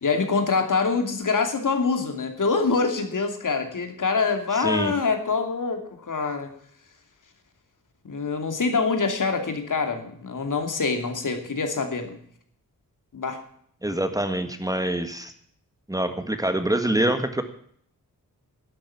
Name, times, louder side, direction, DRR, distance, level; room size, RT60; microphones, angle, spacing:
voice 1, 0.0-6.5 8.0-12.2 13.1-13.4, left 4 dB, 60° left, 6 dB, 2.7 m, -25 dB
voice 2, 4.6-4.9 13.8-15.3 15.9-17.4, right 1 dB, 10° right, 8 dB, 1.6 m, -25 dB
12.0 x 8.3 x 8.5 m, 0.63 s
cardioid pair, 65°, 35 cm